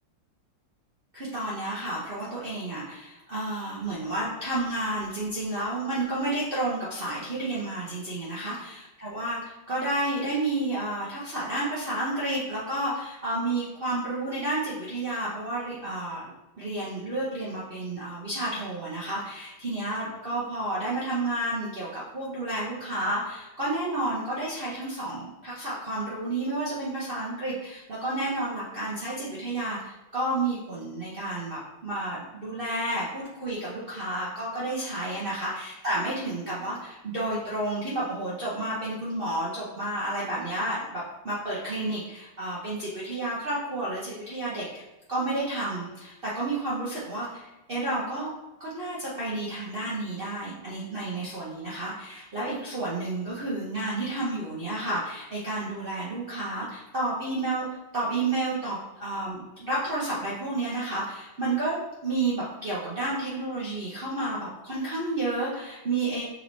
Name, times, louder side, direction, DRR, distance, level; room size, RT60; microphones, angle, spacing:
voice 1, 1.1-44.8 45.1-48.3 48.6-57.7 57.9-66.2, right 2 dB, 80° right, -8 dB, 0.5 m, -31 dB
6.3 x 3.1 x 2.6 m, 1.0 s
omnidirectional pair, 2.3 m